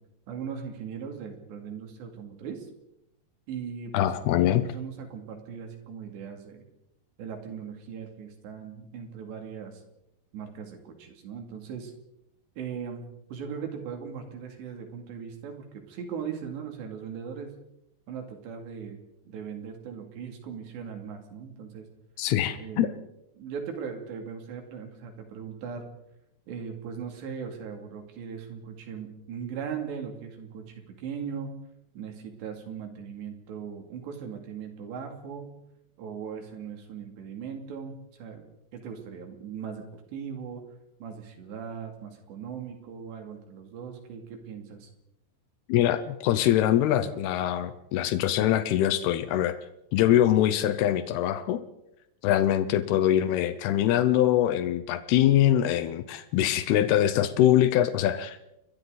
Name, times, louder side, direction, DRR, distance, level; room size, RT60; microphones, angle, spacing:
voice 1, 0.3-2.7 3.5-4.1 4.5-6.7 7.2-9.8 10.3-11.9 12.6-17.6 18.1-21.9 22.6-23.0 23.4-25.9 26.5-31.5 31.9-35.5 36.0-38.4 38.7-39.8 40.1-40.6 41.0-44.9, right 7 dB, 60° right, 4 dB, 4.6 m, -39 dB
voice 2, 3.9-4.7 22.2-23.0 45.7-49.6 49.9-51.6 52.2-58.4, left 12 dB, 90° left, 11 dB, 2.2 m, -23 dB
30.0 x 22.5 x 4.0 m, 0.85 s
omnidirectional pair, 5.8 m